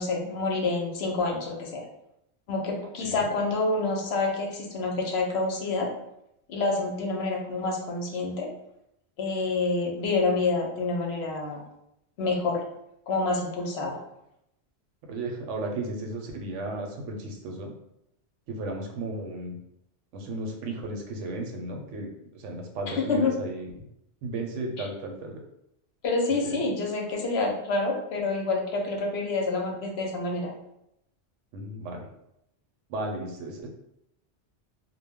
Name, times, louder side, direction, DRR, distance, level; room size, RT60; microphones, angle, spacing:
voice 1, 0.0-1.8 2.5-5.9 6.5-8.5 9.2-11.6 12.2-12.6 13.1-14.0 22.9-23.3 24.8-24.9 26.0-30.5, left 3 dB, 65° left, 0 dB, 0.8 m, -27 dB
voice 2, 3.0-3.3 15.1-17.7 18.5-19.6 20.1-23.9 24.2-25.4 26.4-26.6 31.5-32.1 32.9-33.7, right 2 dB, 85° right, 2 dB, 0.9 m, -34 dB
2.2 x 2.0 x 3.4 m, 0.80 s
omnidirectional pair, 1.2 m